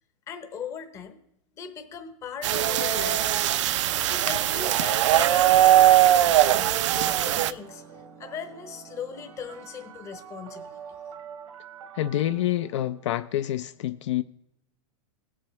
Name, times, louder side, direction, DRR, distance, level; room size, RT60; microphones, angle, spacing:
voice 1, 0.3-1.2 1.6-3.5 3.8-5.6 5.9-7.8 8.2-10.8, left 7 dB, 15° left, 0.7 m, -39 dB
sound 1, 2.4-7.5, right 12 dB, 60° right, 0.4 m, -20 dB
sound 2, 6.5-13.5, right 7 dB, 85° right, 1.5 m, -46 dB
voice 2, 11.9-14.2, left 13 dB, 60° left, 0.4 m, -27 dB
17.5 x 7.4 x 3.1 m
supercardioid pair, 170°, 17 cm